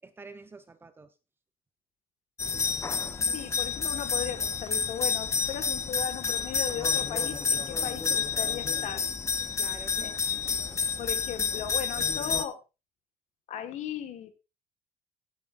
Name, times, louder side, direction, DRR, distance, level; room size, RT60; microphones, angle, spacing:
voice 1, 0.0-1.1 9.6-10.1 10.4-10.9, right 3 dB, 15° right, 10 dB, 0.8 m, -48 dB
sound 1, 2.4-12.5, left 6 dB, 20° left, 0.7 m, -29 dB
voice 2, 3.3-9.1 10.0-10.4 10.6-12.6 13.5-14.3, left 9 dB, 55° left, 9 dB, 1.5 m, -37 dB
17.5 x 8.8 x 2.5 m, 0.28 s
cardioid pair, 165°, 15 cm